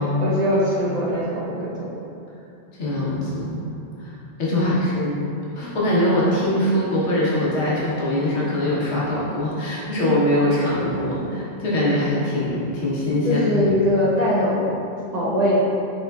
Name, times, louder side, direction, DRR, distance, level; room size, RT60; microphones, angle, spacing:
voice 1, 0.2-1.9 4.5-4.8 13.2-14.8 15.1-15.6, left 1 dB, 45° right, -7 dB, 0.6 m, -21 dB
voice 2, 2.8-3.7 4.0-4.1 4.4-5.2 5.5-13.4, left 1 dB, 90° left, -7 dB, 1.3 m, -22 dB
4.2 x 3.7 x 2.3 m, 2.7 s
omnidirectional pair, 1.1 m